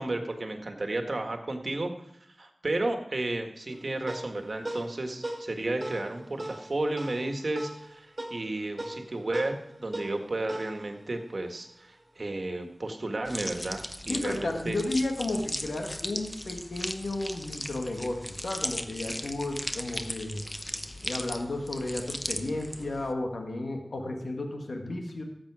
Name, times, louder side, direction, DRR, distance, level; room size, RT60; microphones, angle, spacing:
voice 1, 0.0-1.9 2.4-9.5 9.8-14.8, right 2 dB, 60° right, 5 dB, 1.7 m, -32 dB
sound 1, 3.7-12.4, right 1 dB, 40° right, 2.8 m, -41 dB
sound 2, 13.2-23.1, left 1 dB, 20° left, 1.0 m, -37 dB
voice 2, 14.1-20.4 21.0-25.2, left 2 dB, 80° left, 3 dB, 1.8 m, -33 dB
13.0 x 8.6 x 4.9 m, 0.77 s
wide cardioid pair, 45°, 0 cm